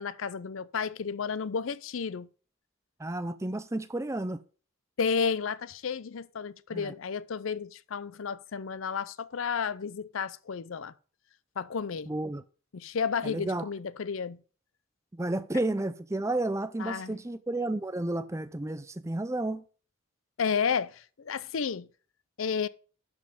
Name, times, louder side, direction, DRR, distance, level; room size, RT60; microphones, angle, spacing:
voice 1, 0.0-2.3 5.0-10.9 11.6-12.1 12.7-14.4 16.8-17.2 20.4-21.9 22.4-22.7, left 6 dB, 80° left, 0.5 m, -32 dB
voice 2, 3.0-4.4 6.7-6.9 12.1-12.4 13.2-13.7 15.1-19.6, right 2 dB, 15° right, 0.5 m, -32 dB
11.5 x 5.4 x 5.0 m
head